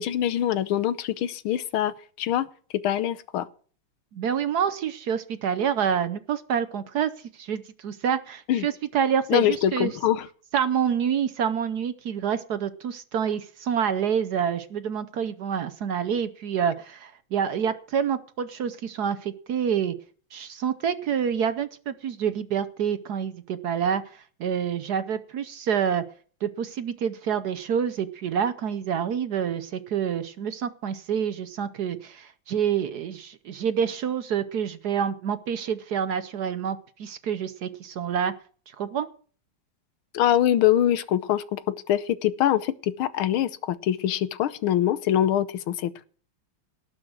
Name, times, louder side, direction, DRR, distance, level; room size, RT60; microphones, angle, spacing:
voice 1, 0.0-2.5 2.7-3.5 8.5-8.7 9.3-10.3 40.1-46.1, left 11 dB, 90° left, 15 dB, 1.7 m, -24 dB
voice 2, 4.1-9.9 10.5-19.9 20.3-26.0 26.4-38.3 38.7-39.1, right 8 dB, 65° right, 12 dB, 1.1 m, -27 dB
18.5 x 6.2 x 6.3 m, 0.43 s
omnidirectional pair, 2.3 m